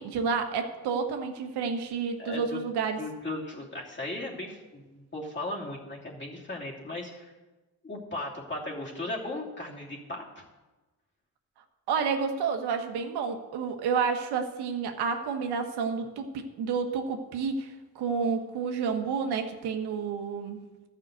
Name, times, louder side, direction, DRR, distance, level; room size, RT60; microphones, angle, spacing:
voice 1, 0.0-3.0 11.9-20.6, right 5 dB, 85° right, 5 dB, 1.3 m, -30 dB
voice 2, 2.2-2.6 3.0-7.3 7.8-10.4, left 2 dB, 30° left, -2 dB, 2.9 m, -37 dB
12.0 x 5.8 x 8.0 m, 1.2 s
cardioid pair, 80°, 38 cm